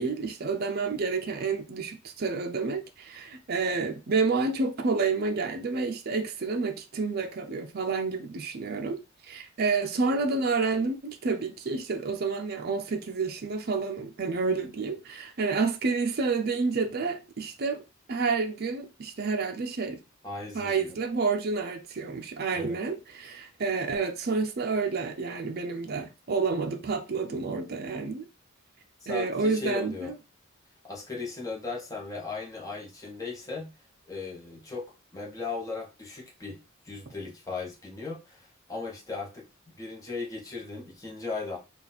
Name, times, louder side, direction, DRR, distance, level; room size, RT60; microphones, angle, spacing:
voice 1, 0.0-17.8 18.1-20.0 20.5-28.3 29.1-30.2, right 4 dB, 45° right, 0.5 m, -29 dB
voice 2, 20.2-20.9 22.5-22.8 29.1-30.1 30.8-33.7 34.1-34.8 35.1-36.6 36.8-41.6, left 4 dB, 15° left, 1.0 m, -37 dB
4.1 x 2.3 x 4.0 m
head